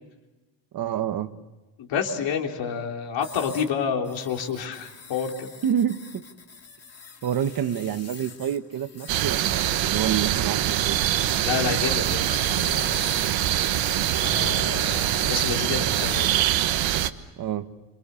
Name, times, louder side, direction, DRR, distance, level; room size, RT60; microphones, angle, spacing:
voice 1, 0.7-1.3 5.6-6.2 7.2-11.0 17.4-17.7, right 9 dB, 50° right, 11 dB, 1.3 m, -28 dB
voice 2, 1.8-5.5 11.4-13.0 14.2-16.3, left 7 dB, 75° left, 2 dB, 3.9 m, -29 dB
sound 1, 3.2-3.7 4.0-9.8 10.7-11.6 12.0-15.7 15.9-16.5 17.0-17.1, left 5 dB, 35° left, 2.8 m, -43 dB
sound 2, 9.1-17.1, right 12 dB, 85° right, 1.3 m, -24 dB
29.0 x 27.5 x 7.0 m, 1.1 s
cardioid pair, 150°, 44 cm